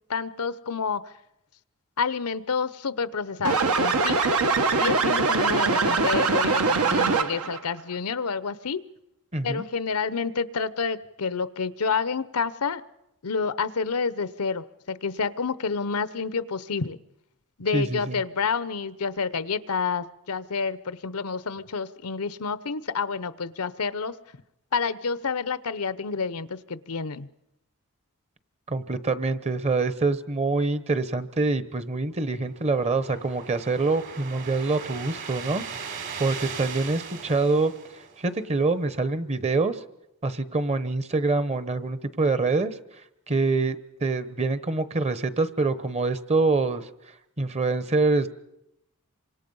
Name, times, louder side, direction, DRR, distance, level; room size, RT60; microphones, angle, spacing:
voice 1, 0.1-1.1 2.0-4.2 4.8-8.8 9.4-12.8 13.2-17.0 17.6-24.1 24.7-27.3, left 5 dB, 85° left, 15 dB, 0.8 m, -29 dB
sound 1, 3.4-7.6, right 4 dB, 80° right, 1.4 m, -22 dB
voice 2, 9.3-9.6 17.7-18.1 28.7-35.9 36.2-37.7 38.2-39.8 40.2-42.7 43.3-43.8 44.0-46.9 47.4-48.3, right 3 dB, 30° right, 13 dB, 1.0 m, -25 dB
sound 2, 32.0-38.6, right 6 dB, 60° right, 3.3 m, -39 dB
28.0 x 25.0 x 5.5 m, 0.85 s
head